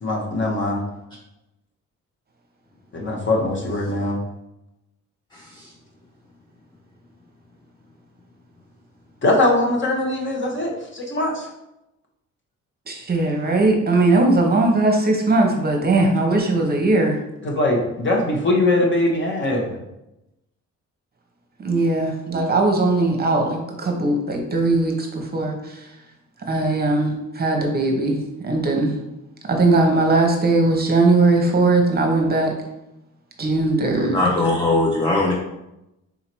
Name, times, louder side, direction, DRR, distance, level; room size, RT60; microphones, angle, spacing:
voice 1, 0.0-0.8 2.9-4.2 9.2-11.5 17.4-19.8, left 2 dB, 40° left, -1 dB, 1.3 m, -21 dB
voice 2, 5.3-5.7 34.0-35.3, left 2 dB, 15° left, -3 dB, 0.8 m, -21 dB
voice 3, 12.9-17.2 21.6-25.9 26.5-29.0 29.5-32.5 33.4-34.2, right 2 dB, 30° right, 2 dB, 0.9 m, -19 dB
4.0 x 2.8 x 4.5 m, 0.89 s
cardioid pair, 90°, 30 cm